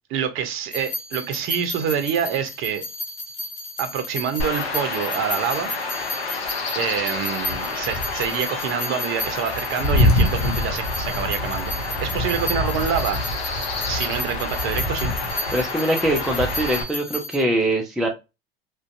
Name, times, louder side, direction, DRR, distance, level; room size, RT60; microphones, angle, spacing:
voice 1, 0.1-2.8 3.8-5.7 6.8-13.2 13.5-15.1, right 8 dB, 45° right, 0.6 m, -27 dB
sound 1, 0.7-17.4, left 1 dB, 40° left, 1.0 m, -34 dB
Chirp tweet / Wind / Stream, 4.4-16.8, left 2 dB, 80° left, 0.7 m, -26 dB
voice 2, 15.5-18.1, right 1 dB, ahead, 0.4 m, -22 dB
2.4 x 2.2 x 2.4 m
hypercardioid pair, 80°, 31 cm